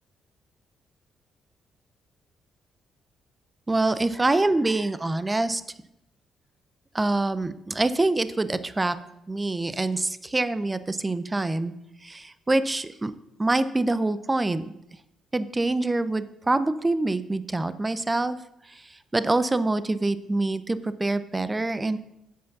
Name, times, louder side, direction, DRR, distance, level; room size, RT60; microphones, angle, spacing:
voice 1, 3.7-5.6 6.9-9.0 9.3-11.7 12.0-13.1 13.4-14.7 15.3-18.4 18.7-22.0, right 2 dB, 20° right, 14 dB, 0.5 m, -25 dB
8.2 x 5.0 x 6.0 m, 0.83 s
cardioid pair, 90°, 0 cm